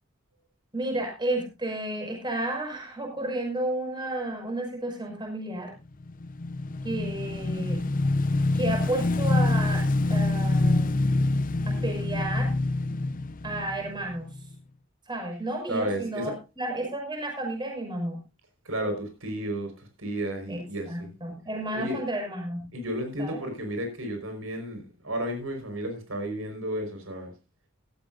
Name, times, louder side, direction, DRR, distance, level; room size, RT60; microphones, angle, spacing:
voice 1, 0.7-5.7 6.8-7.8 8.5-9.8 10.1-10.9 11.6-12.5 13.4-14.3 15.1-18.2 20.5-22.6 23.2-23.4, right 1 dB, 25° right, 6.0 m, -32 dB
Motorcycle / Engine, 6.0-14.5, left 2 dB, 40° left, 0.6 m, -26 dB
voice 2, 15.7-16.3 18.6-21.1 21.7-22.0 22.7-27.3, right 1 dB, 85° right, 5.1 m, -32 dB
17.0 x 13.5 x 2.7 m
head